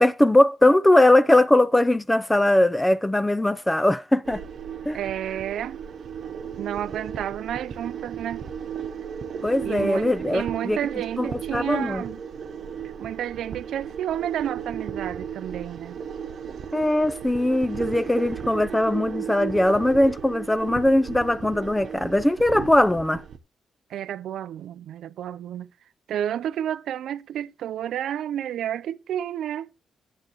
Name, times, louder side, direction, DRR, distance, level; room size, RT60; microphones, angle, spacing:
voice 1, 0.0-4.4 4.9-5.0 9.4-10.8 11.2-12.0 16.7-23.2, left 1 dB, 10° left, 0.5 m, -20 dB
sound 1, 4.3-23.4, right 7 dB, 55° right, 0.9 m, -35 dB
voice 2, 4.9-5.8 6.6-8.4 9.6-12.2 13.0-16.0 23.9-25.7 26.1-29.7, right 10 dB, 80° right, 0.5 m, -31 dB
11.0 x 8.0 x 3.0 m
cardioid pair, 145°, 0 cm